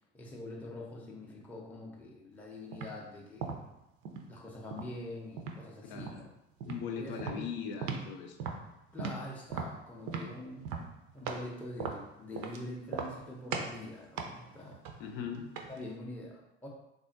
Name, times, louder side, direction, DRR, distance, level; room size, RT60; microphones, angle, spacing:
voice 1, 0.1-3.6 4.3-6.3 6.9-7.5 8.9-10.6 11.1-14.8 15.7-16.7, left 1 dB, 5° left, -3 dB, 0.6 m, -44 dB
sound 1, 2.7-3.0 3.4-4.3 4.7-5.6 6.0-6.3 6.6-6.8 7.2-8.1 8.4-11.5 11.8-12.6 12.9-13.2 13.5-13.8 14.2-15.8, right 5 dB, 50° right, 0.5 m, -38 dB
voice 2, 5.8-6.2 6.6-8.4 15.0-15.5, left 6 dB, 60° left, 3 dB, 0.6 m, -39 dB
3.5 x 2.4 x 2.5 m, 0.88 s
figure-of-eight pair, 55°, 32 cm